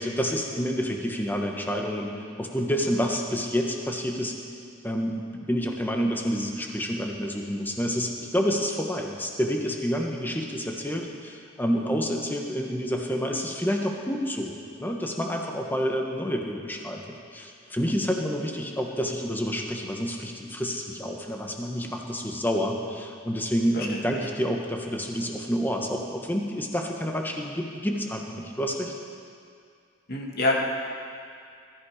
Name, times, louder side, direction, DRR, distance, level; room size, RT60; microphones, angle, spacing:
voice 1, 0.0-2.1 2.4-4.3 4.8-28.9, equal, 10° left, 1 dB, 1.4 m, -28 dB
voice 2, 23.7-24.2 30.1-30.6, left 2 dB, 55° left, -1 dB, 2.3 m, -27 dB
20.5 x 13.5 x 5.1 m, 2.3 s
head